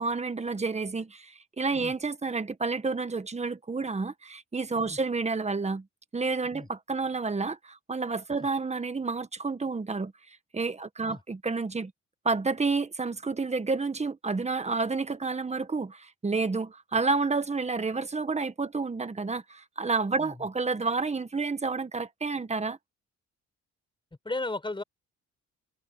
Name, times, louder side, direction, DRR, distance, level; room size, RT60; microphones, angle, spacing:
voice 1, 0.0-5.9 6.1-11.9 12.2-22.8, right 4 dB, 20° right, 1.6 m, -30 dB
voice 2, 24.2-24.8, left 2 dB, 15° left, 5.4 m, -35 dB
cardioid pair, 90°, 30 cm